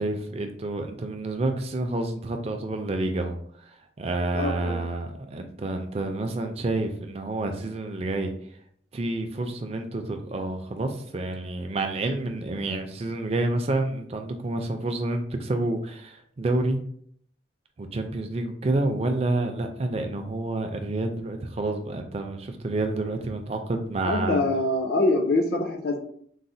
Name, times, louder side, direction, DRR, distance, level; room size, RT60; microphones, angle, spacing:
voice 1, 0.0-3.3 3.6-3.7 4.0-8.3 8.9-16.8 17.8-24.4, right 2 dB, 30° right, 5 dB, 0.3 m, -29 dB
voice 2, 4.3-4.8 24.0-26.0, left 2 dB, 55° left, 5 dB, 0.5 m, -24 dB
4.0 x 2.0 x 2.6 m, 0.63 s
head